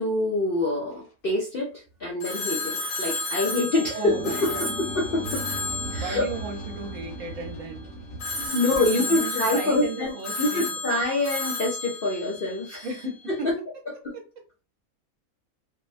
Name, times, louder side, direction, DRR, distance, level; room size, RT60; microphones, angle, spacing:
voice 1, 0.0-1.7 2.0-5.4 5.9-6.3 8.5-10.1 10.4-12.9 13.3-13.5 14.0-14.2, left 2 dB, 50° left, -3 dB, 0.7 m, -26 dB
sound 1, 0.9-1.1 1.9-2.0 4.2-8.5, right 3 dB, 85° left, 1.6 m, -41 dB
Telephone, 2.2-7.4 8.2-13.1, left 2 dB, 70° left, 1.3 m, -33 dB
voice 2, 3.9-4.7 5.9-7.9 8.3-10.7 12.8-13.5 14.1-14.2, right 3 dB, 65° right, 2 dB, 1.1 m, -35 dB
sound 2, 4.0-10.0, left 1 dB, 5° right, 0.7 m, -40 dB
3.4 x 2.2 x 2.5 m, 0.33 s
omnidirectional pair, 1.5 m